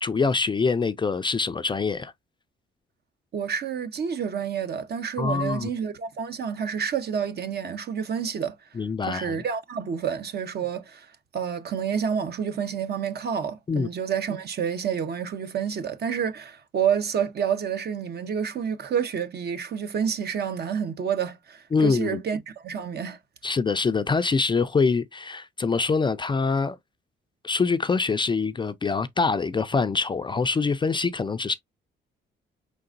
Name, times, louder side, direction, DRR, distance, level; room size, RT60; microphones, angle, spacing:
voice 1, 0.0-2.1 5.2-5.7 8.8-9.4 13.7-13.9 21.7-22.2 23.4-26.8 27.4-31.5, left 4 dB, 25° left, 0.4 m, -24 dB
voice 2, 3.3-8.6 9.1-11.1 11.3-23.2, right 7 dB, 55° right, 0.9 m, -29 dB
5.1 x 3.8 x 2.5 m
cardioid pair, 90°, 20 cm